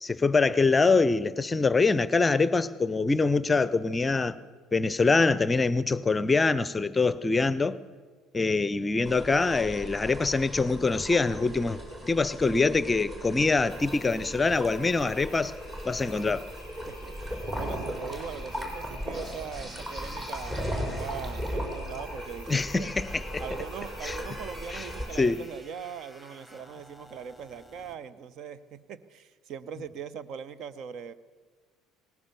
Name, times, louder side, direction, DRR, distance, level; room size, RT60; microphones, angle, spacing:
voice 1, 0.0-4.4 4.7-7.8 8.3-15.6 15.8-16.5 22.5-23.4 24.0-24.2 24.7-24.9 25.2-25.4, left 3 dB, 20° left, 0.7 m, -24 dB
sound 1, 9.0-25.1, equal, 25° right, 5.0 m, -37 dB
sound 2, 13.7-25.5, equal, 85° right, 4.7 m, -49 dB
voice 2, 16.9-22.9 23.4-31.1, right 7 dB, 50° right, 0.8 m, -41 dB
sound 3, 22.9-28.0, equal, 10° right, 2.9 m, -52 dB
20.0 x 19.0 x 6.9 m
figure-of-eight pair, 60°, 0 cm